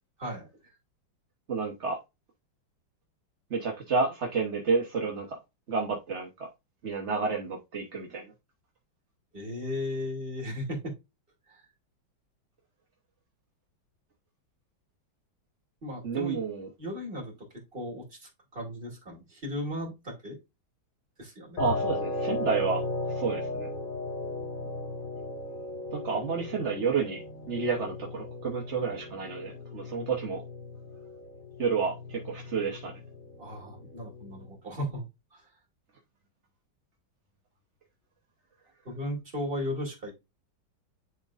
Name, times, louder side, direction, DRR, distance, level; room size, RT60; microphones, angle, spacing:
voice 1, 1.5-2.0 3.5-5.4 5.7-6.5 6.8-8.3 16.0-16.7 21.6-22.8 23.1-23.7 25.9-27.2 27.5-30.4 31.6-33.0, right 5 dB, 40° right, 1.2 m, -30 dB
voice 2, 9.3-10.9 11.5-11.7 15.8-16.4 16.8-17.3 17.7-20.4 21.2-22.0 33.4-35.1 35.3-35.5 38.8-40.1, left 1 dB, 25° right, 2.7 m, -36 dB
sound 1, 21.6-34.6, left 2 dB, 55° left, 2.1 m, -36 dB
11.0 x 3.7 x 2.5 m
omnidirectional pair, 2.2 m